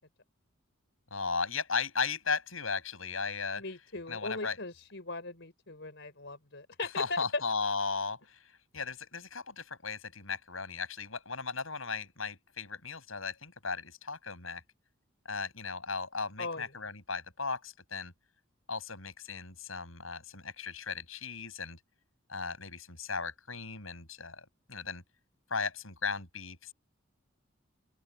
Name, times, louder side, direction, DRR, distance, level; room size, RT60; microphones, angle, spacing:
voice 1, 1.1-3.6 4.1-4.6 7.0-8.4 8.7-14.6 15.2-18.1 18.7-21.8 22.3-25.0 25.5-26.7, left 5 dB, 80° left, 7.9 m, -36 dB
voice 2, 3.6-7.4 16.4-16.7, left 3 dB, 60° left, 5.1 m, -38 dB
open air
head